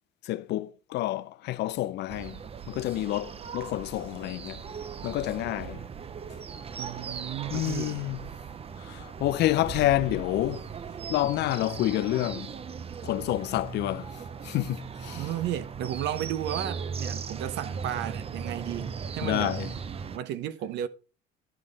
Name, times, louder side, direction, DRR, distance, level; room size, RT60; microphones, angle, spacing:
voice 1, 0.2-2.4 2.7-4.6 5.0-5.8 7.5-8.2 8.8-10.7 11.1-12.5 13.0-15.3 19.2-19.7, left 15 dB, 70° left, 0.5 m, -29 dB
sound 1, 2.1-20.2, right 6 dB, 30° right, 0.6 m, -38 dB
voice 2, 6.8-8.1 15.2-19.6 20.1-20.9, right 11 dB, 75° right, 0.8 m, -33 dB
10.0 x 5.3 x 4.0 m
cardioid pair, 95°, 18 cm